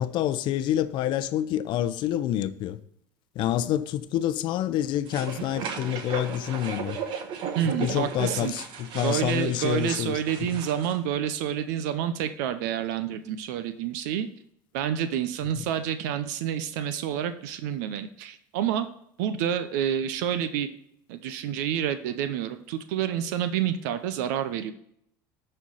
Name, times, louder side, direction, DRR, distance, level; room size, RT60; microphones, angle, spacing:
voice 1, 0.0-2.8 3.4-7.0 7.8-10.5 15.6-15.7, left 12 dB, 55° left, 0.6 m, -27 dB
sound 1, 5.1-11.0, right 6 dB, 60° right, 1.3 m, -36 dB
voice 2, 7.5-8.5 9.0-14.3 14.7-18.9 19.2-20.7 21.1-24.7, right 9 dB, 80° right, 0.6 m, -28 dB
11.0 x 4.4 x 3.9 m
supercardioid pair, 105°, 9 cm